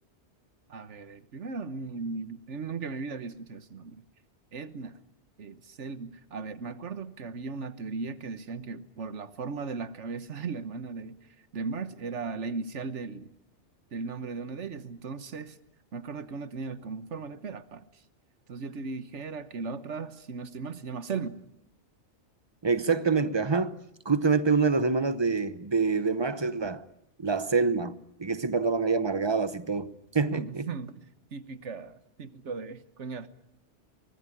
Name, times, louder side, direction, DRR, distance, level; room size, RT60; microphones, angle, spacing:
voice 1, 0.7-4.0 4.5-5.0 5.4-11.2 11.5-13.3 13.9-15.6 15.9-17.8 18.5-21.4 30.3-31.0 31.3-33.3, right 4 dB, 80° right, 1.5 m, -37 dB
voice 2, 22.6-23.8 24.0-26.8 27.2-30.7, right 4 dB, 25° right, 0.9 m, -26 dB
24.0 x 19.5 x 10.0 m
omnidirectional pair, 1.2 m